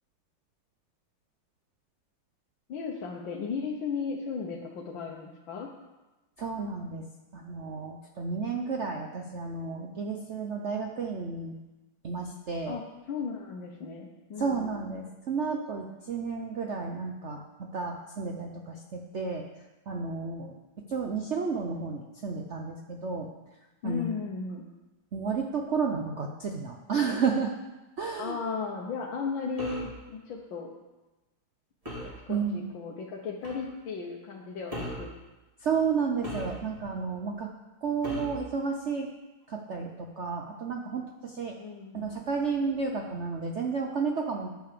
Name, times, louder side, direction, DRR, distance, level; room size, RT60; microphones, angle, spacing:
voice 1, 2.7-5.7 12.7-12.8 13.1-14.8 23.8-24.7 28.2-30.7 32.0-35.1 41.6-42.1, left 5 dB, 70° left, -2 dB, 1.8 m, -35 dB
voice 2, 6.4-7.0 7.3-11.6 12.0-12.8 14.4-19.4 19.9-20.5 20.9-23.3 23.8-24.2 25.1-27.5 28.0-28.4 32.3-32.6 35.6-37.5 37.8-39.1 39.5-41.6 41.9-44.5, right 5 dB, 65° right, 2 dB, 0.7 m, -32 dB
sound 1, 29.6-30.0 31.8-32.2 33.4-33.7 34.7-35.1 36.2-36.9 38.0-38.5, equal, 15° right, 2.3 m, -38 dB
9.1 x 8.7 x 6.7 m, 1.1 s
omnidirectional pair, 2.2 m